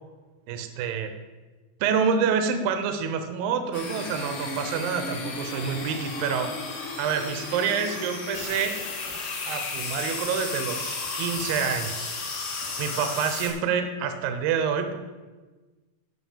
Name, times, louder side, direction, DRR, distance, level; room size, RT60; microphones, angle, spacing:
voice 1, 0.5-1.1 1.8-6.6 7.0-8.8 9.5-12.1 12.8-15.0, right 6 dB, 90° right, 8 dB, 2.0 m, -27 dB
sound 1, 3.7-13.5, left 3 dB, 60° left, 1.4 m, -33 dB
9.5 x 5.9 x 7.3 m, 1.3 s
omnidirectional pair, 5.3 m